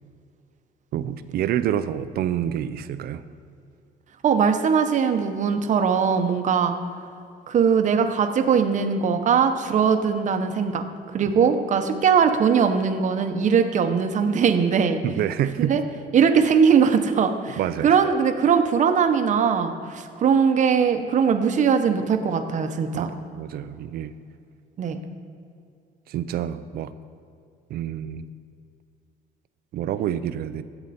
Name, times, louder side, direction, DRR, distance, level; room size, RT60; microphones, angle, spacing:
voice 1, 0.9-3.2 11.2-11.3 15.0-15.8 17.6-17.9 22.9-24.1 26.1-26.9 27.7-28.3 29.7-30.6, right 10 dB, 65° right, 13 dB, 0.6 m, -27 dB
voice 2, 4.2-6.7 7.5-10.8 11.1-15.0 15.6-15.8 16.1-23.1 24.8-25.0, right 6 dB, 45° right, 7 dB, 0.9 m, -20 dB
13.5 x 8.1 x 4.3 m, 2.4 s
cardioid pair, 110°, 17 cm